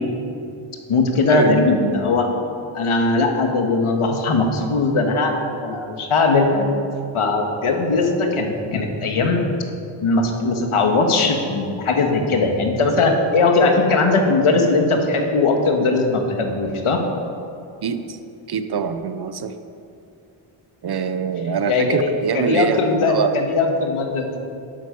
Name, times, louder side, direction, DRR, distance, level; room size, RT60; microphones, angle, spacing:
voice 1, 0.9-2.3 2.7-6.8 7.1-9.4 10.0-17.0 21.4-24.4, left 3 dB, 80° left, 3 dB, 1.8 m, -19 dB
voice 2, 18.5-19.5 20.8-23.3, right 6 dB, 50° right, 10 dB, 0.7 m, -23 dB
12.0 x 11.5 x 5.3 m, 2.5 s
wide cardioid pair, 155°, 50 cm